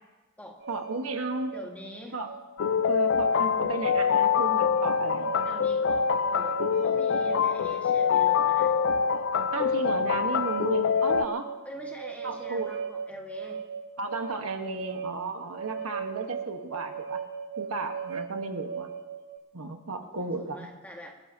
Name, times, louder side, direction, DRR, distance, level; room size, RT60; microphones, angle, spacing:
sound 1, 0.6-19.4, right 6 dB, 50° right, 1.1 m, -38 dB
voice 1, 0.7-1.5 2.1-2.3 2.9-5.3 9.5-11.4 12.2-12.8 14.0-17.2 17.6-18.9 19.5-20.7, right 3 dB, 75° right, 5 dB, 1.4 m, -34 dB
voice 2, 1.5-2.2 5.4-8.8 11.6-13.6 20.0-21.1, left 1 dB, 5° left, 0 dB, 1.8 m, -44 dB
sound 2, 2.6-11.3, left 7 dB, 55° left, 0.3 m, -25 dB
25.5 x 14.0 x 2.8 m, 1.2 s
head